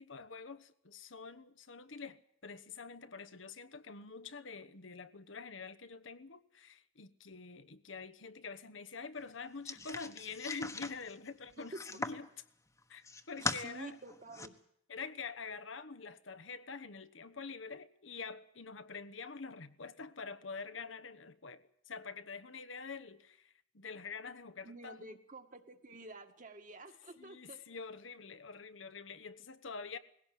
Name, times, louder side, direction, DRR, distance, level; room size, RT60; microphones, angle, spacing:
voice 1, 0.0-12.3 12.9-14.0 14.9-25.2 27.2-30.0, left 4 dB, 85° left, 1.2 m, -46 dB
sound 1, 9.7-12.3 12.8-13.6 14.1-14.5, left 3 dB, 15° left, 1.1 m, -40 dB
voice 2, 11.6-12.0 13.4-14.6 24.6-27.8, right 2 dB, 40° right, 1.8 m, -50 dB
20.0 x 17.0 x 9.2 m
head